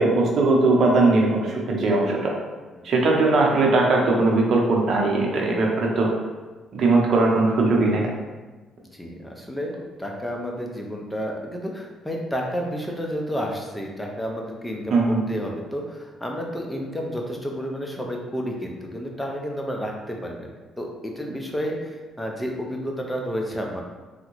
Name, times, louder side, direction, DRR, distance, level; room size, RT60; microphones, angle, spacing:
voice 1, 0.0-2.3 2.8-6.1 6.7-8.1 14.9-15.2, right 2 dB, 60° right, -1 dB, 0.7 m, -19 dB
voice 2, 8.8-20.5 20.8-23.8, equal, 5° left, 0 dB, 0.6 m, -31 dB
3.5 x 2.1 x 3.0 m, 1.3 s
cardioid pair, 85°, 0 cm